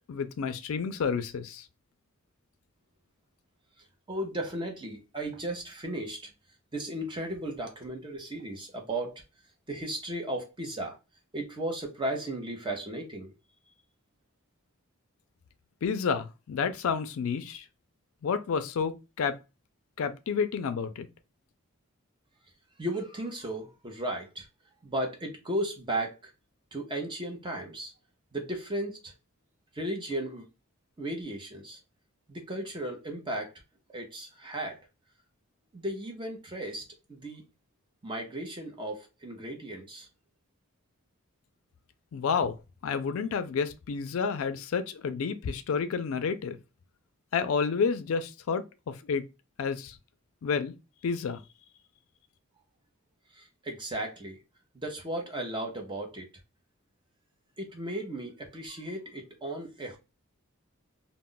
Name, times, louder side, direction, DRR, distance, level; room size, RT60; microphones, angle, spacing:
voice 1, 0.1-1.6 15.8-17.6 18.2-19.4 20.0-21.1 42.1-42.5 42.8-46.6 47.3-49.2 49.6-50.0 50.4-50.7 51.0-51.4, left 5 dB, 70° left, 0.3 m, -30 dB
voice 2, 4.1-6.3 6.7-9.2 9.7-11.0 11.3-13.3 22.8-24.5 24.8-26.3 26.7-27.9 28.3-29.1 29.7-30.5 31.0-31.8 32.3-33.5 33.9-34.8 35.7-36.8 37.1-37.4 38.0-40.1 53.3-54.4 54.7-56.3 57.6-60.0, right 1 dB, 20° right, 0.5 m, -35 dB
2.2 x 2.0 x 3.6 m
head